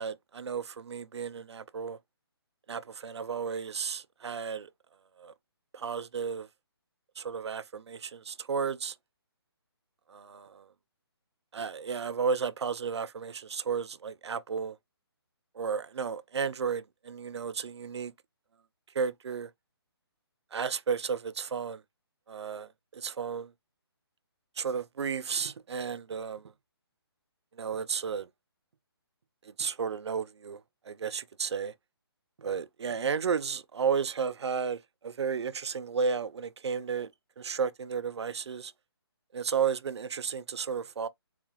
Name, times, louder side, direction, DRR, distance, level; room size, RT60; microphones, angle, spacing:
voice 1, 0.0-2.0 2.7-4.7 5.2-5.3 5.7-6.5 7.2-9.0 10.1-10.7 11.5-14.8 15.5-18.1 18.9-19.5 20.5-21.8 22.3-23.5 24.6-26.5 27.5-28.3 29.4-31.7 32.4-37.1 37.4-38.7 39.3-41.1, right 6 dB, 85° right, 0.4 m, -33 dB
4.0 x 2.2 x 2.9 m
hypercardioid pair, 160°, 14 cm